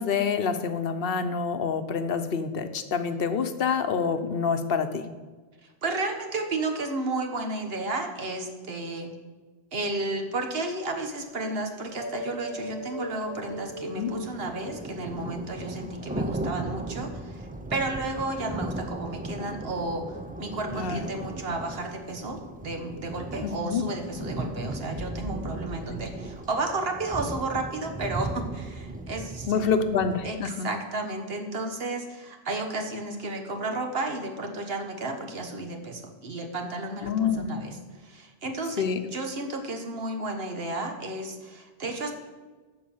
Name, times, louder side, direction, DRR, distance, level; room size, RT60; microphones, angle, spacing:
voice 1, 0.0-5.0 14.0-14.1 20.7-21.1 23.4-23.8 29.5-30.7 37.0-37.5 38.8-39.0, left 6 dB, 65° left, 9 dB, 1.0 m, -27 dB
voice 2, 5.6-9.1 9.7-29.5 30.2-30.4 30.6-42.1, right 2 dB, 70° right, 4 dB, 1.5 m, -32 dB
sound 1, 11.5-11.6 12.6-30.4, right 1 dB, 15° right, 0.3 m, -37 dB
sound 2, 12.0-15.9, equal, 15° left, 1.4 m, -39 dB
13.0 x 4.7 x 7.1 m, 1.3 s
omnidirectional pair, 1.0 m